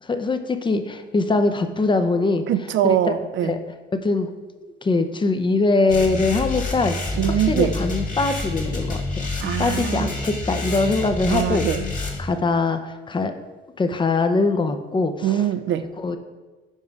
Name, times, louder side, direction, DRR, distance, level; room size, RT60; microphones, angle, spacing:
voice 1, 0.0-2.4 2.8-3.0 3.4-3.6 4.0-4.3 4.8-9.3 9.6-11.7 12.2-13.4 13.8-15.4 16.0-16.2, left 3 dB, 25° left, 8 dB, 0.6 m, -22 dB
voice 2, 2.5-3.6 7.2-7.7 9.4-10.1 11.3-11.8 15.2-15.9, right 10 dB, 70° right, 12 dB, 0.5 m, -22 dB
sound 1, 5.9-12.2, left 2 dB, 40° left, 1.5 m, -28 dB
5.4 x 4.7 x 5.2 m, 1.2 s
cardioid pair, 90°, 20 cm